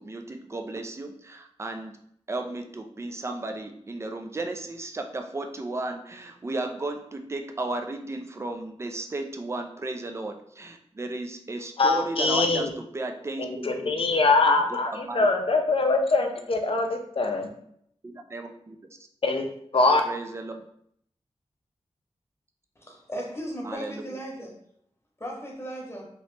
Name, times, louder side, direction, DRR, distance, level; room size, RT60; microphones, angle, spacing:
voice 1, 0.0-2.0 2.3-14.0 14.9-15.3 18.0-18.8 20.0-20.6 23.6-24.0, right 2 dB, 25° right, 5 dB, 0.4 m, -34 dB
voice 2, 11.8-12.7 13.4-17.5 19.2-19.5 19.7-20.0, left 3 dB, 55° left, 4 dB, 0.5 m, -23 dB
voice 3, 22.8-24.5 25.2-26.0, equal, 20° left, -1 dB, 1.0 m, -36 dB
3.0 x 2.7 x 3.2 m, 0.69 s
wide cardioid pair, 85°, 11 cm